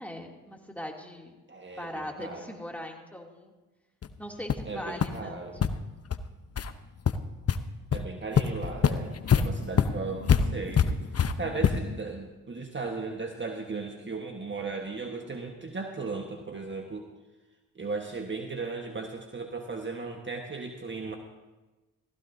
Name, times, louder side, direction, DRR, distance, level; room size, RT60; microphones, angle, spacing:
voice 1, 0.0-1.3 1.8-3.5 4.2-5.7, left 1 dB, 5° left, 0 dB, 2.7 m, -40 dB
voice 2, 1.5-2.5 4.6-5.6 7.9-17.1 17.7-21.2, right 4 dB, 30° right, 3 dB, 1.4 m, -36 dB
sound 1, 4.0-4.1 4.5-4.7 5.0-5.1 5.6-5.7 6.1-6.2 6.6-6.7 7.1-7.6 7.9-8.0 8.4-12.0, left 7 dB, 35° left, 0.8 m, -25 dB
16.5 x 15.5 x 2.7 m, 1.1 s
hypercardioid pair, 45°, 40 cm